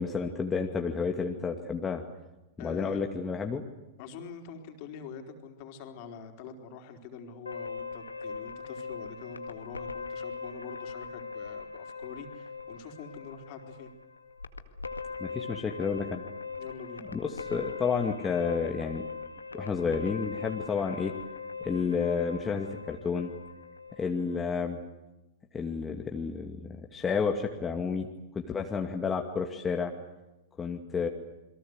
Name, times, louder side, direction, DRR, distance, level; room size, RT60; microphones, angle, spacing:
voice 1, 0.0-2.0 2.6-3.6 15.2-16.2 17.1-19.0 19.5-21.1 21.6-23.3 24.0-24.8 25.5-28.1 28.3-29.9 30.6-31.1, left 5 dB, 15° left, 2 dB, 2.3 m, -31 dB
voice 2, 2.6-3.0 4.0-13.9 16.6-17.1, left 6 dB, 45° left, 5 dB, 4.4 m, -45 dB
sound 1, 7.5-24.5, left 5 dB, 85° left, 1.9 m, -40 dB
28.5 x 23.0 x 8.1 m, 1.0 s
figure-of-eight pair, 100°, 0 cm